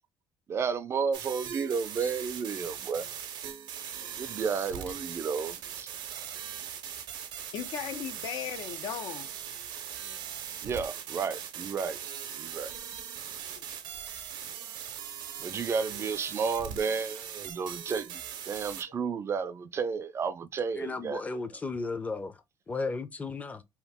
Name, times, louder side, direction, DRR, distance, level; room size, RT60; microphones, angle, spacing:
voice 1, 0.5-3.1 4.2-5.9 10.6-12.0 12.4-12.7 15.4-21.2, right 5 dB, 35° right, 0.4 m, -32 dB
sound 1, 1.1-18.8, right 9 dB, 70° right, 0.7 m, -40 dB
voice 2, 7.5-9.3 13.4-13.6, left 9 dB, 70° left, 0.6 m, -37 dB
voice 3, 20.8-23.6, left 3 dB, 20° left, 0.5 m, -35 dB
3.0 x 2.4 x 3.5 m
cardioid pair, 125°, 8 cm